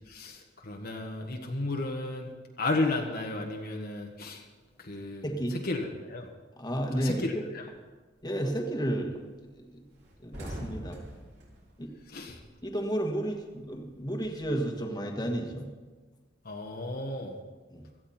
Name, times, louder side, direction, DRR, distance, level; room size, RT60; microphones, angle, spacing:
voice 1, 0.6-2.3 2.6-4.4 4.8-5.2 5.5-6.3 6.9-7.7 12.1-12.4 16.4-17.3, left 2 dB, 55° left, 1 dB, 1.5 m, -33 dB
voice 2, 5.2-5.6 6.6-7.4 8.2-9.2 9.6-9.7 10.2-11.0 11.8-11.9 12.6-15.7 17.7-17.8, right 1 dB, 20° left, 1 dB, 1.7 m, -32 dB
sound 1, 8.2-8.6 8.9-9.1 9.4-9.5 9.8-12.8 13.1-14.8, equal, 65° right, 4.1 m, -44 dB
17.0 x 14.0 x 4.4 m, 1.3 s
head